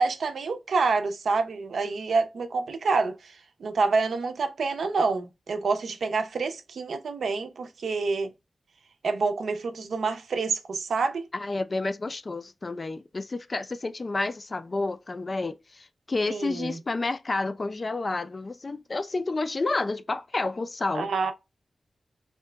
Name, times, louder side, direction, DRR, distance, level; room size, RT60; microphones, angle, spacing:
voice 1, 0.0-3.3 3.6-8.3 9.0-11.2 16.3-16.8 20.9-21.3, right 4 dB, 85° right, 0.5 m, -27 dB
voice 2, 11.3-21.1, left 3 dB, 35° left, 0.3 m, -30 dB
2.8 x 2.2 x 3.3 m
wide cardioid pair, 135°, 0 cm